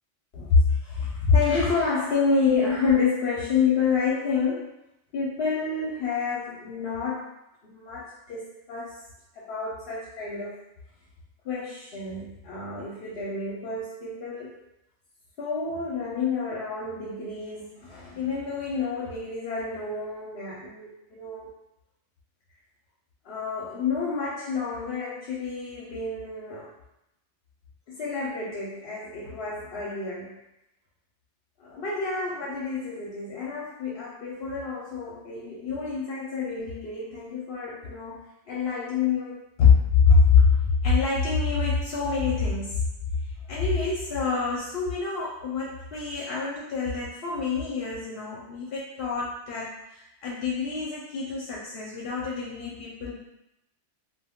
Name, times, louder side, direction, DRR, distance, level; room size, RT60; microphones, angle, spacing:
voice 1, 0.3-4.7 5.1-7.3 7.6-9.0 9.3-10.6 11.4-14.5 15.4-21.5 23.2-26.7 27.9-30.4 31.6-42.8 43.2-53.1, left 5 dB, 65° left, -5 dB, 0.8 m, -27 dB
2.2 x 2.2 x 3.5 m, 0.85 s
omnidirectional pair, 1.2 m